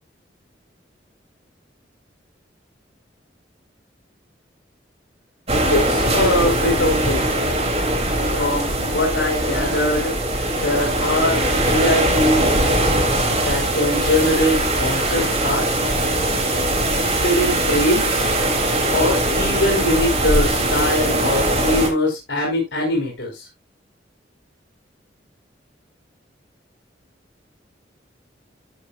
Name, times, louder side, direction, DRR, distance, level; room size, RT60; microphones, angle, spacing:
sound 1, 5.5-21.9, right 1 dB, 35° right, 3.3 m, -21 dB
voice 1, 5.7-7.2 8.3-10.1 10.6-12.5 13.4-15.7 17.2-18.2 18.9-23.5, left 1 dB, 80° left, -1 dB, 3.9 m, -22 dB
13.0 x 7.2 x 2.5 m, 0.21 s
head